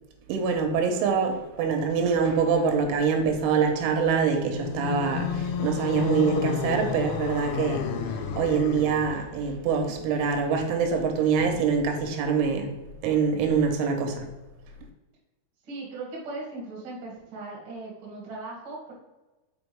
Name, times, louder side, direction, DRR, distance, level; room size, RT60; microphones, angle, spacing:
voice 1, 0.3-12.7 13.0-14.2, right 5 dB, 85° right, 4 dB, 3.2 m, -25 dB
sound 1, 4.5-9.2, left 7 dB, 85° left, 3.0 m, -31 dB
voice 2, 15.7-18.9, right 2 dB, 50° right, -3 dB, 1.6 m, -38 dB
6.2 x 5.3 x 3.4 m, 1.1 s
omnidirectional pair, 5.6 m